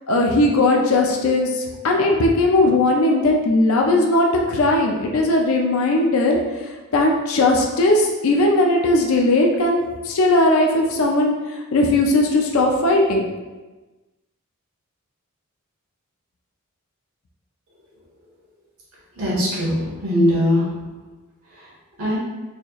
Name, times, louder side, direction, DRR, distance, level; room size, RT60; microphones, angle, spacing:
voice 1, 0.1-13.3, left 2 dB, 70° left, 0 dB, 0.5 m, -18 dB
voice 2, 19.1-20.7 21.5-21.7 22.0-22.2, left 1 dB, 85° right, -6 dB, 1.4 m, -21 dB
4.2 x 2.3 x 3.0 m, 1.2 s
head